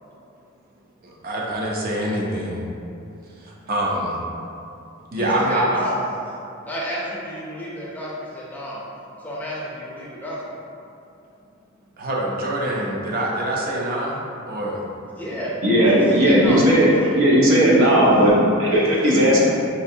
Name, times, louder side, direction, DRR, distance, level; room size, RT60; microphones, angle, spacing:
voice 1, 1.0-2.7 3.4-4.2 5.1-5.8 12.0-14.2 14.5-14.8, right 1 dB, 45° right, -3 dB, 0.6 m, -25 dB
voice 2, 5.1-6.0 6.7-8.8 9.2-10.4 15.2-17.2 17.5-17.9 18.7-19.4, equal, 10° left, -6 dB, 0.5 m, -31 dB
voice 3, 15.6-19.4, equal, 75° right, -5 dB, 0.9 m, -16 dB
5.3 x 2.5 x 2.7 m, 2.6 s
head